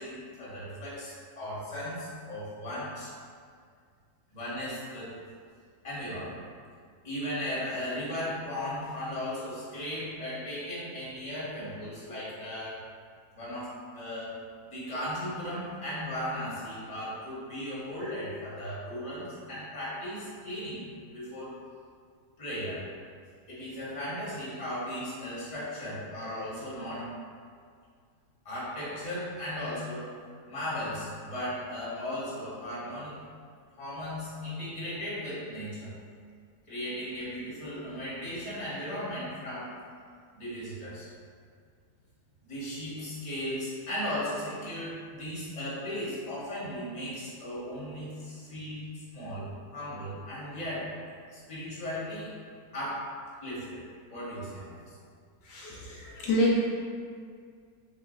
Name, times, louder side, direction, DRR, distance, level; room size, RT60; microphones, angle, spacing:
voice 1, 0.0-3.1 4.3-5.1 5.8-6.4 7.0-12.8 13.3-21.6 22.4-22.9 23.5-27.1 28.4-30.1 30.5-33.1 33.8-35.9 36.7-39.8 40.3-41.1 42.4-50.9 51.3-52.3 52.7-53.1 53.4-54.9, equal, 25° left, -9 dB, 1.4 m, -36 dB
voice 2, 55.4-56.6, left 1 dB, 75° left, -5 dB, 1.3 m, -27 dB
4.1 x 3.1 x 3.8 m, 2.1 s
omnidirectional pair, 1.8 m